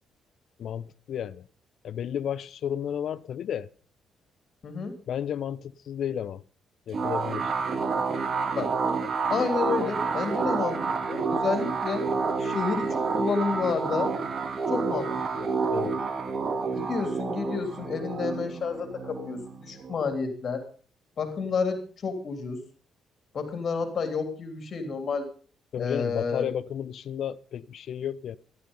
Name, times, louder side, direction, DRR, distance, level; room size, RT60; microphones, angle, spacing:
voice 1, 0.6-1.4 1.8-3.7 5.1-6.4 6.9-7.5 15.7-16.0 25.7-28.4, left 9 dB, 65° left, 0.7 m, -32 dB
voice 2, 4.6-5.0 8.5-8.7 9.3-10.8 11.1-12.1 12.4-14.1 14.7-15.1 15.4-15.5 16.7-20.6 21.2-22.6 23.3-25.3 25.8-26.5, left 5 dB, 50° left, 3.4 m, -30 dB
sound 1, 6.9-20.2, right 4 dB, 45° right, 1.8 m, -29 dB
14.0 x 12.0 x 5.5 m
cardioid pair, 90°, 0 cm